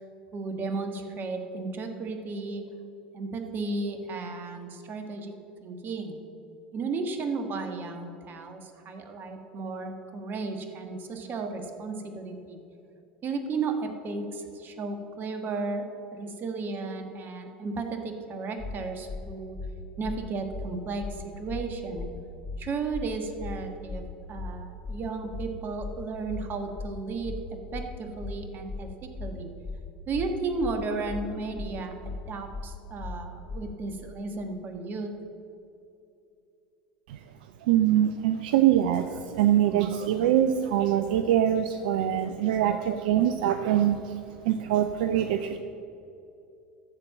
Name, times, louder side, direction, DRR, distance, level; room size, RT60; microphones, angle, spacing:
voice 1, 0.3-2.6 3.1-5.3 5.6-6.2 6.7-12.6 13.2-15.8 16.1-19.6 20.0-22.1 22.6-24.0 24.3-27.4 27.7-29.5 30.1-31.9 32.3-35.1, right 3 dB, 40° right, 6 dB, 1.4 m, -34 dB
sound 1, 18.6-18.7 19.1-19.2 19.5-19.7 20.0-20.2 20.5-20.7 21.0-21.1 21.5-21.6 21.9-22.1 22.4-22.6 22.9-23.1 23.4-23.5 23.9-24.0 24.3-24.5 24.8-25.0 25.3-25.5 25.8-25.9 26.3-26.4 26.7-26.9 27.2-27.4 27.7-27.9 28.2-28.3 28.7-28.8 29.1-29.3 29.6-29.8 30.1-30.3 30.6-30.7 31.1-31.2 31.5-31.7 32.0-32.2 32.5-32.7 33.0-33.1 33.5-33.6, left 3 dB, 25° left, 1.9 m, -36 dB
voice 2, 37.6-45.6, right 11 dB, 70° right, 8 dB, 0.5 m, -24 dB
13.5 x 4.5 x 7.4 m, 2.7 s
hypercardioid pair, 80°, 5 cm